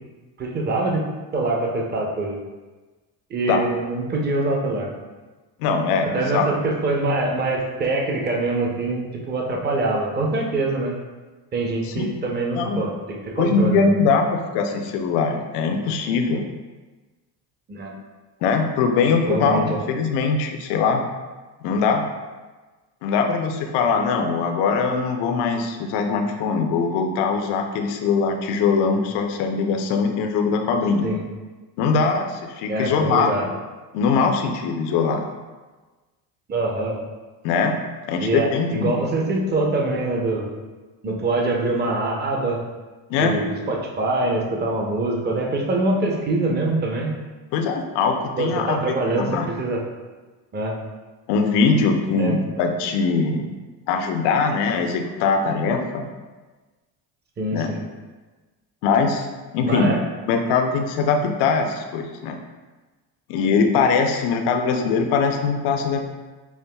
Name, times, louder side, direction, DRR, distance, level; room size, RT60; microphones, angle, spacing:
voice 1, 0.4-1.0 1.3-2.4 3.3-4.9 6.1-10.9 11.5-13.9 17.7-17.9 19.2-19.8 31.0-31.2 32.7-33.5 36.5-37.0 38.2-40.5 41.0-42.6 43.2-47.1 48.4-49.8 50.5-50.7 52.2-52.3 57.4-57.8 59.6-60.0, right 2 dB, 25° right, 0 dB, 0.6 m, -24 dB
voice 2, 5.6-6.5 11.9-12.1 12.5-12.8 13.4-16.4 18.4-21.0 21.6-22.0 23.0-31.0 31.8-33.4 33.9-35.2 37.4-37.8 38.1-39.0 43.1-43.4 47.5-49.5 51.3-53.5 53.9-56.1 57.5-57.7 58.8-59.3 59.5-59.9 60.3-62.4 63.3-66.1, left 5 dB, 70° left, 4 dB, 0.6 m, -21 dB
5.6 x 2.5 x 2.2 m, 1.3 s
supercardioid pair, 100°, 42 cm